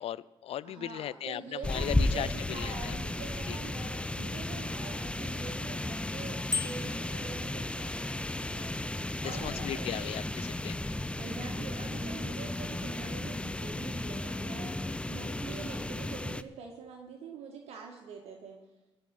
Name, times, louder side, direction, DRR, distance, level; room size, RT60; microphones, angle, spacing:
voice 1, 0.0-3.0 3.5-3.6 9.2-10.8, left 11 dB, 65° left, 20 dB, 0.5 m, -37 dB
voice 2, 0.6-8.7 9.2-10.1 11.2-18.6, right 5 dB, 75° right, 1 dB, 1.7 m, -45 dB
sound 1, 1.6-16.4, left 2 dB, 10° left, 0.6 m, -34 dB
Bicycle bell, 6.5-7.1, left 5 dB, 30° left, 0.9 m, -33 dB
15.5 x 5.7 x 9.7 m, 1.0 s
supercardioid pair, 65°, 11 cm